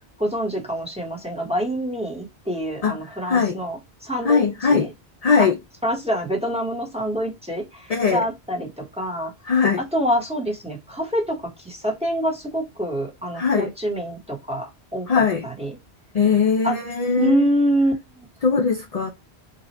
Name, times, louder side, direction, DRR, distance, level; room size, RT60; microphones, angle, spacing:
voice 1, 0.2-4.9 5.4-5.5 5.8-9.3 9.9-15.7 16.6-16.7 17.2-18.3, equal, 5° right, 1.1 m, -26 dB
voice 2, 3.3-3.6 4.2-4.9 5.2-5.5 7.9-8.2 9.5-9.8 13.3-13.7 15.1-15.5 16.1-17.4 18.4-19.1, left 5 dB, 45° left, 0.5 m, -20 dB
2.7 x 2.4 x 4.1 m
omnidirectional pair, 1.1 m